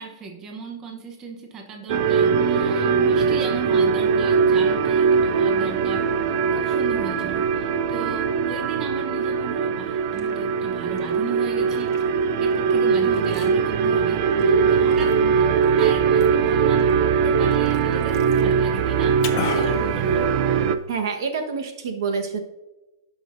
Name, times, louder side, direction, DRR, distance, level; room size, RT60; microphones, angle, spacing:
voice 1, 0.0-6.2 6.5-12.0 12.4-19.2 19.5-20.3, right 4 dB, 20° right, 3 dB, 1.0 m, -36 dB
sound 1, 1.9-20.8, right 6 dB, 45° right, 0.6 m, -21 dB
Liquid, 9.8-20.8, left 8 dB, 40° left, 0.9 m, -40 dB
voice 2, 20.9-22.4, right 5 dB, 65° right, 4 dB, 1.3 m, -27 dB
16.5 x 5.9 x 2.6 m, 1.0 s
supercardioid pair, 160°, 2 cm